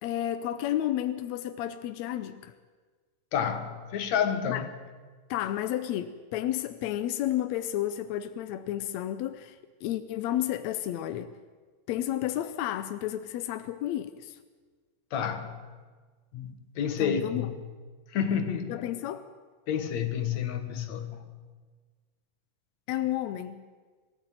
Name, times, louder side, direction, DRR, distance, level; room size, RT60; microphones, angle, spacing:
voice 1, 0.0-2.5 4.5-4.6 5.3-11.4 11.9-14.4 17.0-17.5 18.7-19.3 22.9-23.6, left 12 dB, 75° left, 1.7 m, -31 dB
voice 2, 3.3-4.7 15.1-15.6 16.3-17.5 18.1-18.8 19.7-21.3, left 8 dB, 60° left, 2.6 m, -30 dB
22.0 x 14.5 x 9.2 m
omnidirectional pair, 3.9 m